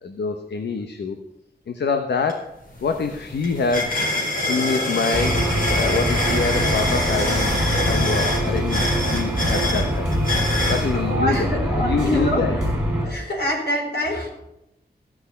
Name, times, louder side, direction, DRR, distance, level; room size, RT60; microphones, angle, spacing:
voice 1, 0.0-1.2 1.7-2.5 2.8-7.5 7.8-10.2 10.7-12.6, left 4 dB, 90° left, 5 dB, 1.0 m, -26 dB
sound 1, 2.3-2.4 2.7-10.9, left 1 dB, 55° left, 4.4 m, -25 dB
sound 2, 5.1-13.1, equal, 5° right, 4.2 m, -23 dB
voice 2, 10.9-12.4 13.1-14.3, equal, 75° left, 0 dB, 4.2 m, -25 dB
15.5 x 6.2 x 8.4 m, 0.88 s
wide cardioid pair, 145°, 17 cm